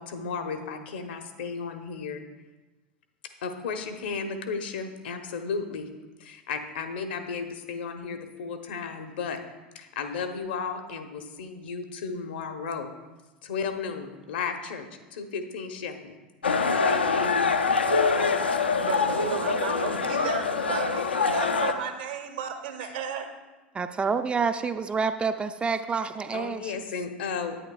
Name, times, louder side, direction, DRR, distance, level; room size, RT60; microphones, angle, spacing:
voice 1, 0.0-2.2 3.4-5.9 6.2-9.4 9.7-12.9 13.4-16.2 16.8-17.5 26.3-27.6, left 5 dB, 65° left, 6 dB, 1.0 m, -34 dB
sound 1, 16.4-21.7, left 4 dB, 85° left, 0.5 m, -24 dB
voice 2, 18.9-23.3, right 8 dB, 65° right, 6 dB, 1.0 m, -34 dB
voice 3, 23.7-26.8, right 5 dB, 20° right, 9 dB, 0.4 m, -28 dB
9.9 x 9.3 x 2.3 m, 1.2 s
figure-of-eight pair, 80°, 6 cm